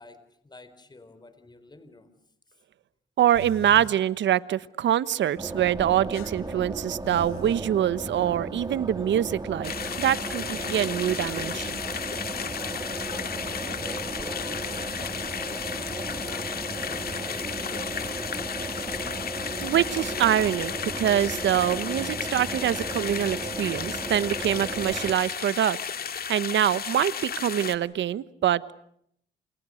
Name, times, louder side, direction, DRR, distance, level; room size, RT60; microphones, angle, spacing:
voice 1, 0.0-2.1 2.5-2.6 13.1-18.6, left 2 dB, 20° left, 11 dB, 4.3 m, -50 dB
voice 2, 3.2-11.8 19.6-25.8 26.3-28.6, right 11 dB, 65° right, 16 dB, 1.2 m, -25 dB
sound 1, 3.3-4.0 6.1-7.7 9.8-11.5 12.6-13.3 14.4-14.7 16.3-16.5, left 9 dB, 85° left, 1.5 m, -45 dB
sound 2, 5.4-25.2, right 3 dB, 20° right, 3.1 m, -36 dB
sound 3, 9.6-27.8, left 7 dB, 50° left, 2.1 m, -34 dB
29.0 x 28.5 x 6.5 m, 0.71 s
cardioid pair, 90°, 20 cm